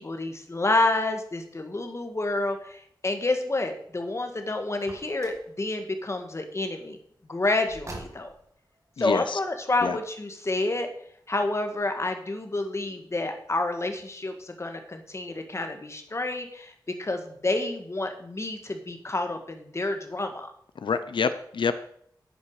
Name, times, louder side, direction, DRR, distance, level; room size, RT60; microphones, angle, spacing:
voice 1, 0.0-7.0 7.3-8.3 9.0-10.9 11.3-20.5, left 2 dB, 35° left, 6 dB, 1.6 m, -29 dB
Car, 4.8-5.5 7.6-8.5, right 1 dB, 40° right, 2.6 m, -43 dB
voice 2, 9.0-9.4 9.8-10.0 20.8-21.7, left 5 dB, 85° left, 11 dB, 0.7 m, -27 dB
10.0 x 9.4 x 4.8 m, 0.66 s
wide cardioid pair, 105°, 8 cm